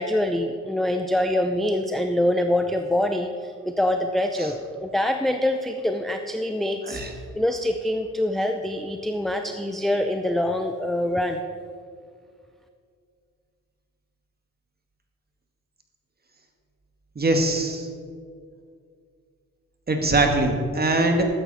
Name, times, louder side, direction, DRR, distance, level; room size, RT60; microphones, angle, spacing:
voice 1, 0.0-7.0 7.3-11.4, left 1 dB, ahead, 5 dB, 0.6 m, -25 dB
voice 2, 17.2-17.9 19.9-21.2, right 2 dB, 30° right, 4 dB, 1.9 m, -22 dB
13.0 x 8.1 x 4.3 m, 2.2 s
supercardioid pair, 65°, 33 cm